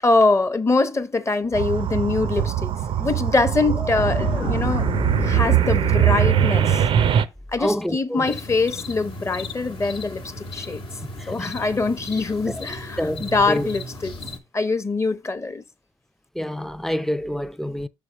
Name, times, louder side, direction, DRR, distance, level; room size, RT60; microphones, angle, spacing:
voice 1, 0.0-2.7 3.0-4.9 5.2-6.8 7.5-10.8 11.3-14.1 14.5-15.6, left 3 dB, 25° left, 0.8 m, -23 dB
sound 1, 1.5-7.2, right 10 dB, 60° right, 0.5 m, -21 dB
Boom, 4.0-7.0, left 4 dB, 80° left, 1.0 m, -30 dB
voice 2, 7.6-8.3 11.2-11.5 12.5-12.7 13.0-13.7 16.4-17.9, equal, 5° left, 0.4 m, -27 dB
sound 2, 8.3-14.4, left 1 dB, 60° left, 1.0 m, -36 dB
6.3 x 3.4 x 5.0 m
hypercardioid pair, 50°, 11 cm